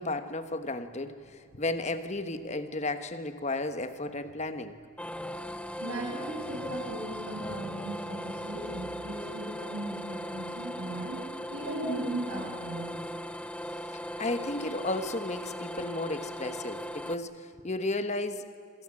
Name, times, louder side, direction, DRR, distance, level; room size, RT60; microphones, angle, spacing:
voice 1, 0.0-4.8 13.9-18.5, left 2 dB, 30° left, 10 dB, 1.3 m, -34 dB
sound 1, 5.0-17.1, equal, 5° left, 0.7 m, -39 dB
voice 2, 5.8-13.0, right 1 dB, 75° right, -3 dB, 7.0 m, -37 dB
28.0 x 25.0 x 7.6 m, 2.3 s
head